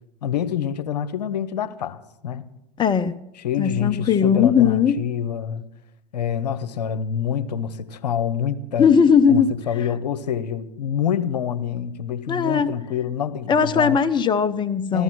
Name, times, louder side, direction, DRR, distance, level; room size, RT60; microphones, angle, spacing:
voice 1, 0.2-2.4 3.4-5.7 6.1-8.9 9.3-14.0 14.9-15.0, left 8 dB, 80° left, 1.0 m, -26 dB
voice 2, 2.8-3.1 3.6-5.0 8.8-9.5 12.3-12.7 13.5-15.0, left 6 dB, 20° left, 0.8 m, -18 dB
14.5 x 14.0 x 6.2 m
hypercardioid pair, 95°, 21 cm